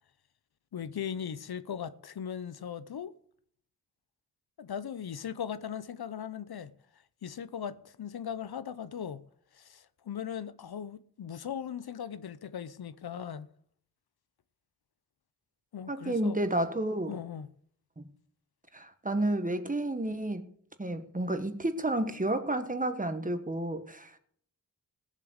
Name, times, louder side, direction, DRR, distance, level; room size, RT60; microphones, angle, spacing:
voice 1, 0.7-3.1 4.6-6.7 7.2-9.2 9.5-13.5 15.7-16.4 17.1-17.5, left 8 dB, 75° left, 0.7 m, -38 dB
voice 2, 15.9-17.2 18.0-18.1 18.7-20.5 20.8-24.2, right 1 dB, 20° right, 1.4 m, -31 dB
17.0 x 7.5 x 6.5 m
wide cardioid pair, 70°, 38 cm